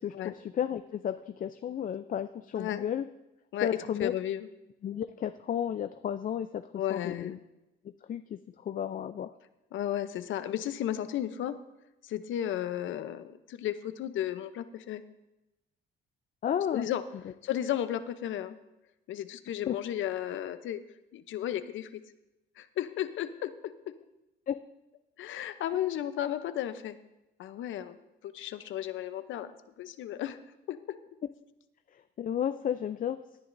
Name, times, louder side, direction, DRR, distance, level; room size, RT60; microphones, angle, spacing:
voice 1, 0.0-3.1 3.6-4.1 4.8-6.6 6.9-7.4 8.1-9.3 16.4-16.9 19.7-19.8 24.5-24.6 31.9-33.2, left 9 dB, 45° left, 10 dB, 0.4 m, -33 dB
voice 2, 4.0-4.5 6.8-7.3 9.7-11.6 12.0-15.0 16.7-17.0 17.4-18.6 19.1-20.8 21.1-22.0 22.6-23.5 25.2-27.0 27.4-28.0 28.2-29.5 29.8-30.4 30.7-30.8, left 11 dB, 75° left, 12 dB, 0.7 m, -34 dB
18.0 x 10.0 x 2.6 m, 0.96 s
cardioid pair, 90°, 20 cm